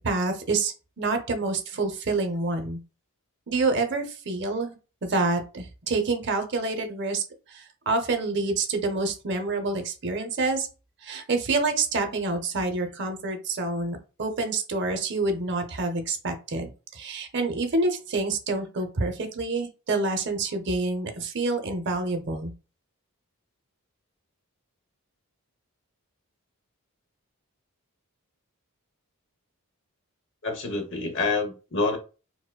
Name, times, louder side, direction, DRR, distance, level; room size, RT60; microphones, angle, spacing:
voice 1, 0.0-0.7 1.0-2.8 3.5-4.8 5.0-7.2 7.5-10.7 11.0-22.5, right 3 dB, 50° right, 6 dB, 0.6 m, -27 dB
voice 2, 30.4-32.0, left 3 dB, 55° left, 4 dB, 0.9 m, -27 dB
4.7 x 2.1 x 2.2 m, 0.33 s
head